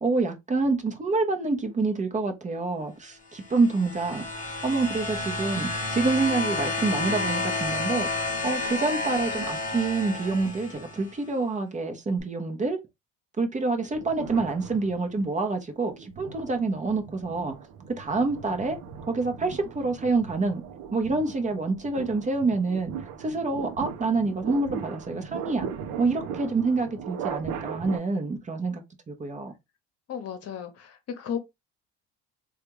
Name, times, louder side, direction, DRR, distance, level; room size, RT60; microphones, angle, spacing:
voice 1, 0.0-4.2 4.6-8.1 8.4-12.8 13.4-17.6 17.9-18.8 19.0-20.6 20.9-22.9 23.2-25.7 26.0-29.5, right 3 dB, 25° right, 0.7 m, -27 dB
sound 1, 3.4-11.1 12.2-12.3, left 2 dB, 25° left, 0.9 m, -31 dB
sound 2, 13.9-15.4 15.9-28.0, right 7 dB, 75° right, 0.6 m, -38 dB
voice 2, 30.1-31.4, left 8 dB, 50° left, 0.9 m, -34 dB
3.3 x 2.4 x 3.0 m
supercardioid pair, 85°, 31 cm